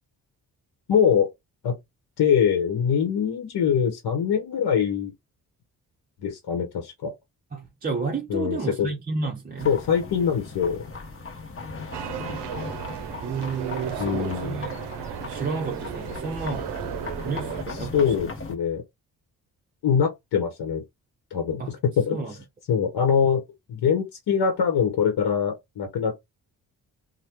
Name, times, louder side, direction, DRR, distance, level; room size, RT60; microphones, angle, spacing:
voice 1, 0.9-1.3 1.6-1.8 2.2-5.1 6.2-7.1 8.3-8.9 9.6-10.9 14.0-14.6 17.9-18.8 19.8-20.8 21.3-22.2 22.7-23.4 23.7-26.4, left 7 dB, 70° left, 0.9 m, -23 dB
voice 2, 7.5-9.8 13.2-14.8 15.3-16.7 17.2-18.3 21.6-21.8 22.1-22.3, right 4 dB, 20° right, 0.6 m, -31 dB
sound 1, 9.6-18.6, left 3 dB, 35° left, 0.9 m, -37 dB
sound 2, 11.9-17.6, right 10 dB, 75° right, 0.6 m, -35 dB
2.8 x 2.2 x 3.4 m
supercardioid pair, 50°, 41 cm